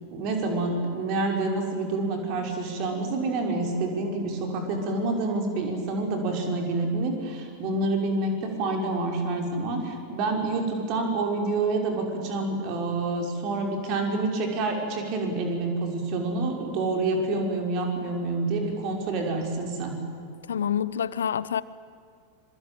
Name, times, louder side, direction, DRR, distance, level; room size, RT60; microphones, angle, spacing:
voice 1, 0.1-19.9, right 2 dB, 40° right, 2 dB, 5.7 m, -28 dB
voice 2, 20.5-21.6, left 8 dB, 65° left, 19 dB, 0.7 m, -27 dB
25.5 x 24.0 x 9.1 m, 2.3 s
figure-of-eight pair, 90°, 0 cm